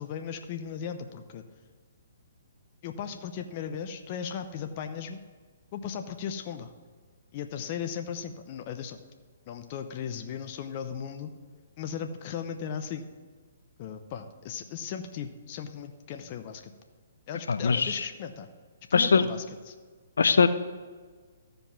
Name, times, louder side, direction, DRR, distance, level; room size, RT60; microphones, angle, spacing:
voice 1, 0.0-1.4 2.8-5.2 5.7-6.7 7.3-9.0 9.5-11.4 11.8-13.1 13.8-16.7 17.3-18.5 18.9-19.7, left 7 dB, 40° left, 6 dB, 0.8 m, -37 dB
voice 2, 17.5-18.1 18.9-19.2 20.2-20.5, left 5 dB, 75° left, 11 dB, 0.6 m, -21 dB
14.0 x 5.2 x 5.9 m, 1.5 s
hypercardioid pair, 135°, 0 cm